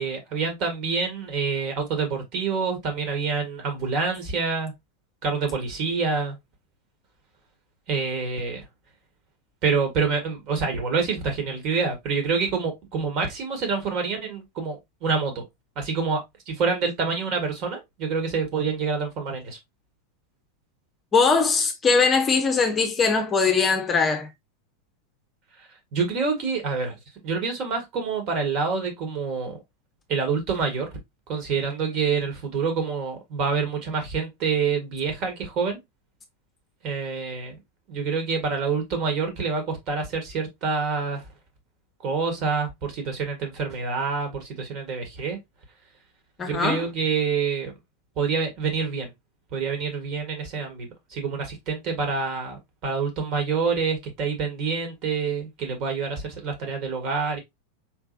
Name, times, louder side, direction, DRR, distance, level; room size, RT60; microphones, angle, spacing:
voice 1, 0.0-4.7 5.2-6.4 7.9-8.6 9.6-14.8 15.0-15.4 15.7-19.6 25.9-27.0 27.2-29.6 30.1-31.0 31.3-35.8 36.8-37.6 37.9-41.2 42.0-45.4 46.4-47.7 48.2-49.1 49.5-57.4, right 5 dB, 40° right, 1.8 m, -27 dB
voice 2, 21.1-24.3 46.4-46.8, left 4 dB, 20° left, 0.8 m, -21 dB
4.7 x 3.4 x 2.5 m
figure-of-eight pair, 90°, 0 cm